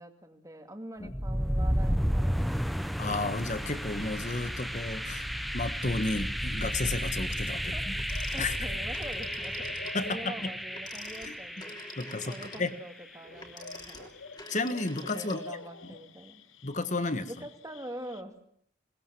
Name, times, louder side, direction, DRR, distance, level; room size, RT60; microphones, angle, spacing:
voice 1, 0.0-2.9 4.6-4.7 7.5-7.9 8.3-9.7 10.0-11.8 12.2-14.1 15.1-16.4 17.3-18.4, right 1 dB, 15° right, 6 dB, 2.2 m, -44 dB
sound 1, 1.0-12.9, equal, ahead, 0.8 m, -32 dB
voice 2, 3.0-5.3 5.5-7.9 8.4-8.6 9.9-10.5 11.2-11.3 12.0-12.7 14.5-15.4 16.6-17.3, left 2 dB, 40° left, 11 dB, 1.5 m, -32 dB
sound 2, 3.6-18.2, left 3 dB, 80° left, 1.1 m, -50 dB
Telephone, 8.0-10.0 10.7-15.7, left 2 dB, 20° left, 3.1 m, -46 dB
21.0 x 20.0 x 7.6 m, 0.68 s
head